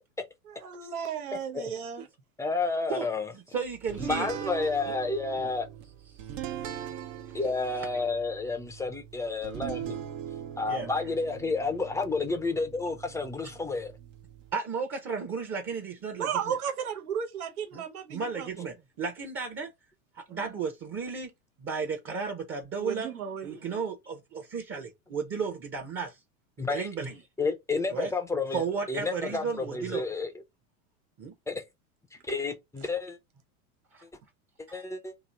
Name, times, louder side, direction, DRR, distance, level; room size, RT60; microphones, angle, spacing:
voice 1, 0.6-2.1 16.1-18.5 20.3-20.4 22.8-23.6, right 8 dB, 85° right, 1.0 m, -34 dB
voice 2, 2.4-3.3 4.0-5.7 7.3-10.0 10.6-13.9 26.6-26.9 27.4-28.6 28.9-30.3 31.5-31.6 32.2-33.2 34.6-35.1, left 3 dB, 5° left, 0.5 m, -30 dB
voice 3, 3.5-4.3 5.4-5.5 10.7-10.9 13.4-13.5 14.5-16.6 17.7-17.8 18.1-19.7 20.1-21.3 21.6-26.2 26.6-27.2 27.9-28.1 28.5-30.0 31.2-31.3 33.9-34.0 34.7-34.9, right 5 dB, 30° right, 0.9 m, -34 dB
sound 1, 3.9-14.5, right 10 dB, 60° right, 0.8 m, -41 dB
3.0 x 2.7 x 3.8 m
hypercardioid pair, 95°, 43 cm